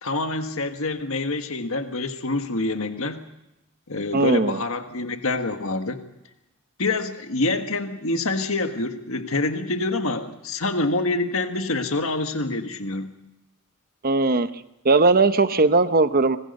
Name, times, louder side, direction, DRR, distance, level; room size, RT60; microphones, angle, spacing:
voice 1, 0.0-3.2 3.9-6.0 6.8-13.1, left 2 dB, 65° left, 6 dB, 1.7 m, -26 dB
voice 2, 4.1-4.6 14.0-14.5 14.8-16.4, right 3 dB, 45° right, 11 dB, 0.9 m, -18 dB
26.0 x 20.5 x 5.4 m, 0.91 s
head